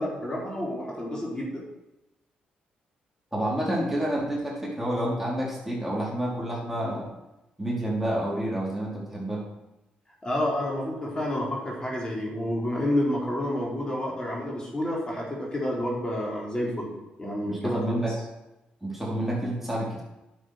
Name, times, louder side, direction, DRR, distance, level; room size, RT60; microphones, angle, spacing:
voice 1, 0.0-1.6 10.2-16.9 17.2-18.0, left 1 dB, 25° left, -3 dB, 4.4 m, -29 dB
voice 2, 3.3-7.1 7.6-9.4 17.5-18.1 18.8-20.0, right 1 dB, 5° right, -4 dB, 4.3 m, -29 dB
9.9 x 7.7 x 6.7 m, 0.97 s
supercardioid pair, 65°, 3 cm